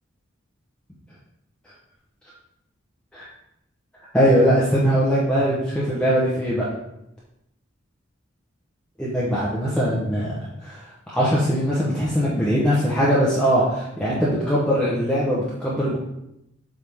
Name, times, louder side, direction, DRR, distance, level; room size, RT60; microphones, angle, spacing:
voice 1, 4.1-6.6 9.0-10.3 10.6-16.0, equal, 5° left, -8 dB, 1.1 m, -21 dB
7.9 x 3.8 x 3.7 m, 0.83 s
head